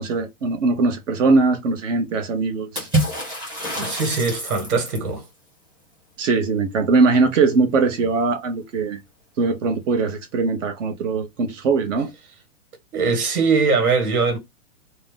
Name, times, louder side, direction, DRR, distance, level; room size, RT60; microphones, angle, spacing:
voice 1, 0.0-2.9 6.2-9.0 9.4-12.1, right 4 dB, 55° right, 0.8 m, -21 dB
Water / Splash splatter, 2.8-5.1, right 1 dB, 10° right, 0.6 m, -26 dB
voice 2, 3.8-5.2 12.9-14.4, right 4 dB, 75° right, 1.6 m, -21 dB
2.7 x 2.0 x 3.5 m
hypercardioid pair, 160°, 44 cm